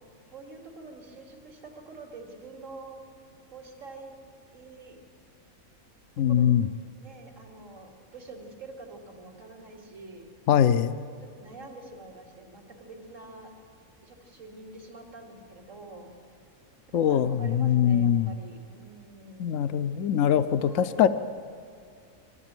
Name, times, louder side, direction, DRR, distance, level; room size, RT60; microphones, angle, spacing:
voice 1, 0.3-3.0 3.5-4.1 4.5-5.0 6.3-6.6 7.0-10.3 11.2-13.5 14.0-16.1 16.9-19.7 20.6-21.1, right 3 dB, 65° right, 1 dB, 2.9 m, -46 dB
voice 2, 6.2-6.7 10.5-10.9 16.9-18.3 19.4-21.1, left 9 dB, 70° left, 11 dB, 1.0 m, -22 dB
23.0 x 14.0 x 9.0 m, 2.3 s
omnidirectional pair, 1.5 m